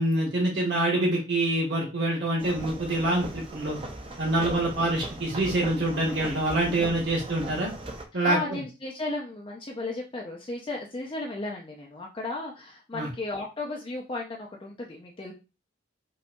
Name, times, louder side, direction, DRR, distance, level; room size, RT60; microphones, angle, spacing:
voice 1, 0.0-3.8 4.2-7.7 8.1-8.4 12.9-13.1, right 1 dB, 55° right, -3 dB, 1.3 m, -26 dB
sound 1, 2.4-8.0, right 1 dB, 25° right, 0.5 m, -39 dB
voice 2, 4.4-4.8 6.7-6.9 8.2-15.3, left 2 dB, 25° left, -1 dB, 0.4 m, -35 dB
5.2 x 2.6 x 2.2 m, 0.30 s
head